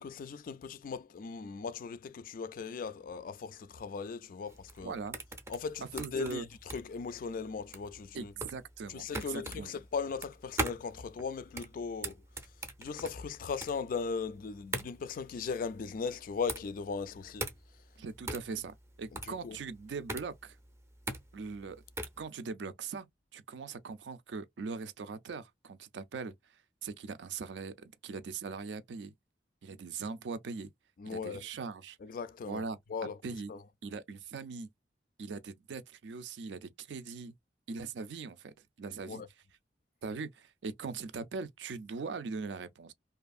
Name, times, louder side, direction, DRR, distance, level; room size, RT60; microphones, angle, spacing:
voice 1, 0.0-5.0 5.5-6.5 6.7-8.3 8.9-12.2 12.8-17.5 19.2-19.6 31.0-31.4 32.0-32.6 32.9-33.2 33.5-33.6 39.1-39.3, left 5 dB, 50° left, 0.3 m, -38 dB
sound 1, 4.5-22.2, right 2 dB, 15° right, 0.5 m, -41 dB
voice 2, 4.8-5.2 6.0-6.5 8.1-9.7 18.0-20.6 21.3-21.8 22.2-23.1 23.3-26.3 26.8-29.1 29.6-30.7 31.1-32.0 32.5-32.8 33.2-33.5 33.8-34.7 35.2-37.3 37.7-39.2 40.0-42.9, right 4 dB, 80° right, 0.4 m, -41 dB
2.7 x 2.5 x 2.3 m
head